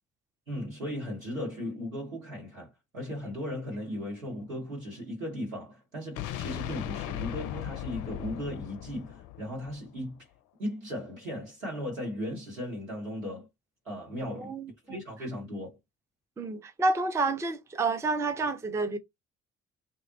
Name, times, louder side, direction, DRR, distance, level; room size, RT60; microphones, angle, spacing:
voice 1, 0.5-10.2 10.6-13.5 13.8-14.6 14.8-15.8, equal, 90° right, 1.1 m, -37 dB
sound 1, 6.2-10.1, left 13 dB, 50° left, 0.5 m, -37 dB
voice 2, 14.4-14.7 16.4-19.0, right 3 dB, 10° right, 0.4 m, -29 dB
2.5 x 2.0 x 2.6 m
figure-of-eight pair, 40°, 39 cm